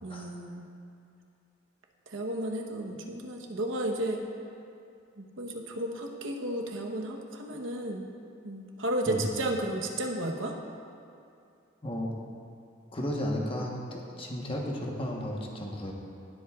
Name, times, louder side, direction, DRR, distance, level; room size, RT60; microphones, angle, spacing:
voice 1, 0.0-0.7 2.1-4.2 5.2-8.0 8.4-10.5, right 1 dB, 80° right, 2 dB, 1.0 m, -33 dB
voice 2, 12.9-15.9, left 1 dB, 25° left, -1 dB, 1.1 m, -33 dB
17.0 x 7.8 x 2.4 m, 2.5 s
head